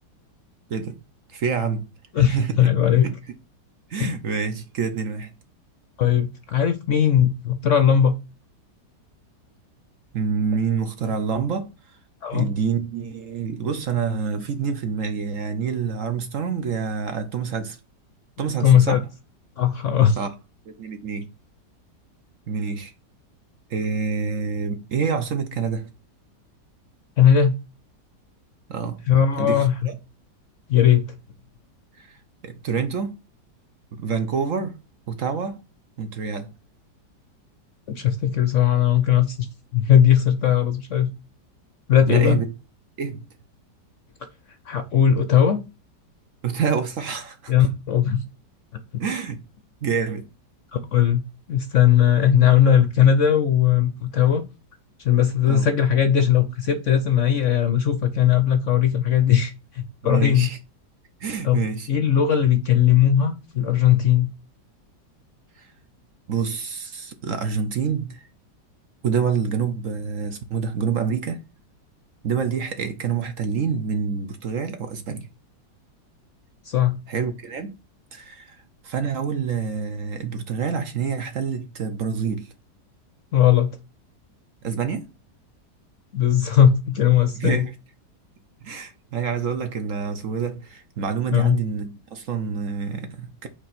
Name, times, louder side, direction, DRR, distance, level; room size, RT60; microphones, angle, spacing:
voice 1, 1.3-1.9 2.2-2.6 3.0-3.1 3.9-5.3 10.1-11.7 12.3-17.8 18.4-19.0 20.2-20.3 20.7-21.3 22.5-22.9 23.7-25.8 28.7-29.0 29.4-29.9 32.0-32.2 32.4-33.1 33.9-34.8 35.1-35.6 36.0-36.5 42.1-42.5 43.0-43.2 46.4-47.5 49.0-49.4 49.8-50.2 55.4-55.7 60.0-60.6 61.2-61.9 65.6-65.7 66.3-68.3 69.0-71.4 72.2-75.3 77.1-77.7 78.1-78.6 78.8-82.5 84.6-85.1 87.3-87.7 88.6-93.5, right 6 dB, 55° right, 1.1 m, -27 dB
voice 2, 2.1-3.1 4.0-4.1 6.0-8.2 12.2-12.5 18.6-19.0 19.6-20.2 27.2-27.5 29.1-29.8 30.7-31.0 37.9-39.5 39.7-41.1 41.9-42.4 44.7-45.6 47.5-48.2 50.7-54.4 55.0-60.5 61.4-64.3 76.7-77.0 83.3-83.8 86.1-87.7 91.3-91.6, left 9 dB, 60° left, 0.8 m, -18 dB
5.2 x 4.3 x 5.8 m
omnidirectional pair, 1.9 m